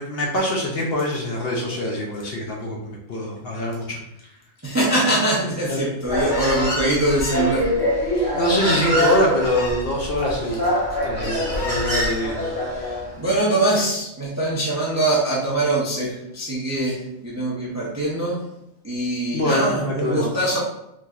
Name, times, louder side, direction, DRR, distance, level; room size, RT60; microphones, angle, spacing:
voice 1, 0.0-4.0 5.7-5.8 8.3-10.7 11.0-12.4 19.3-20.3, left 1 dB, 60° left, -1 dB, 0.7 m, -24 dB
voice 2, 4.6-7.7 11.2-11.3 12.7-18.4 18.8-20.6, right 1 dB, 25° right, -5 dB, 0.4 m, -23 dB
Human voice, 6.0-13.1, equal, 35° left, 1.6 m, -24 dB
3.7 x 2.7 x 2.3 m, 0.84 s
omnidirectional pair, 1.4 m